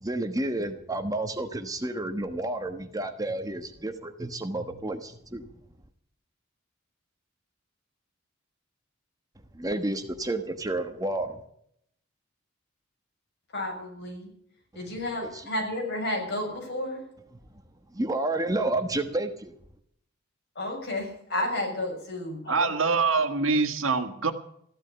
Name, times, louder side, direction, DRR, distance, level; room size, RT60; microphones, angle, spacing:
voice 1, 0.0-5.5 9.5-11.4 15.2-15.4 17.9-19.5, right 2 dB, 20° right, 7 dB, 1.2 m, -30 dB
voice 2, 13.5-14.3 14.7-17.1 20.5-22.8, left 1 dB, 55° left, 1 dB, 6.8 m, -32 dB
voice 3, 22.5-24.3, right 4 dB, 80° right, 7 dB, 1.8 m, -24 dB
15.0 x 12.0 x 7.0 m, 0.71 s
head